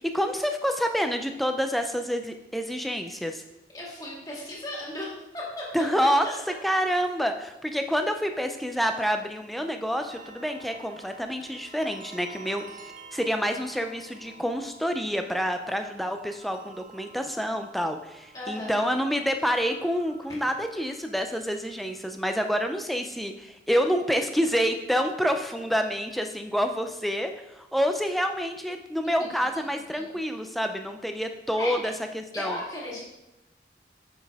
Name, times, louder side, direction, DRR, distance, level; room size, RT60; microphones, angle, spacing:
voice 1, 0.0-3.4 5.7-6.3 6.6-12.6 13.1-32.6, equal, ahead, 6 dB, 0.4 m, -28 dB
voice 2, 3.7-5.6 6.0-6.1 18.3-18.9 29.9-30.0 31.5-31.8 32.3-33.0, left 1 dB, 20° left, -5 dB, 1.9 m, -35 dB
sound 1, 10.1-23.4, right 3 dB, 45° right, 0.7 m, -50 dB
8.4 x 5.5 x 3.5 m, 0.92 s
head